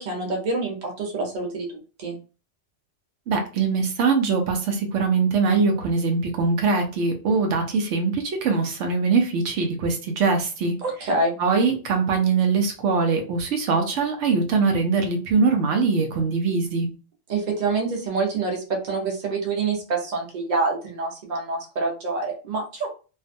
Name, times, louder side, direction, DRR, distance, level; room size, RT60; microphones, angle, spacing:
voice 1, 0.0-1.7 2.0-2.2 10.8-11.4 17.3-22.9, right 3 dB, 45° right, 0 dB, 0.8 m, -26 dB
voice 2, 3.3-10.8 11.4-16.9, right 4 dB, 80° right, 4 dB, 0.9 m, -22 dB
2.5 x 2.2 x 2.5 m, 0.34 s
omnidirectional pair, 1.2 m